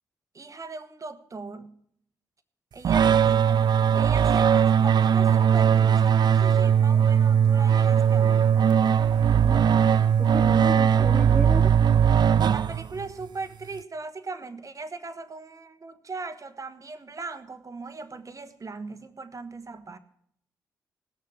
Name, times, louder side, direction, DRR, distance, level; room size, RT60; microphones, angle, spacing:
voice 1, 0.3-1.7 2.7-3.6 3.9-8.5 12.5-20.0, right 3 dB, 40° right, 11 dB, 1.3 m, -39 dB
sound 1, 2.8-13.1, right 8 dB, 55° right, 0.5 m, -20 dB
voice 2, 9.4-9.8 10.2-11.7, left 1 dB, 5° left, 6 dB, 1.0 m, -34 dB
18.0 x 6.7 x 7.1 m, 0.69 s
hypercardioid pair, 40°, 9 cm